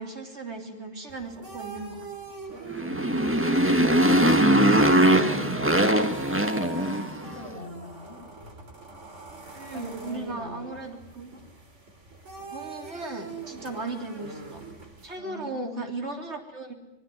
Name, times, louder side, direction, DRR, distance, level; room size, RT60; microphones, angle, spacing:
voice 1, 0.0-2.4 9.6-11.3 12.5-14.6 15.0-16.7, right 3 dB, 70° right, 3 dB, 3.7 m, -37 dB
sound 1, 1.1-15.2, right 4 dB, 85° right, 3.3 m, -44 dB
Motorcycle, 2.7-7.3, right 1 dB, 10° right, 1.6 m, -21 dB
voice 2, 2.9-3.2 5.0-5.7 6.3-8.2 9.7-10.8 15.2-15.9, left 1 dB, 65° left, 2 dB, 8.2 m, -41 dB
26.0 x 20.5 x 9.4 m, 0.89 s
omnidirectional pair, 1.2 m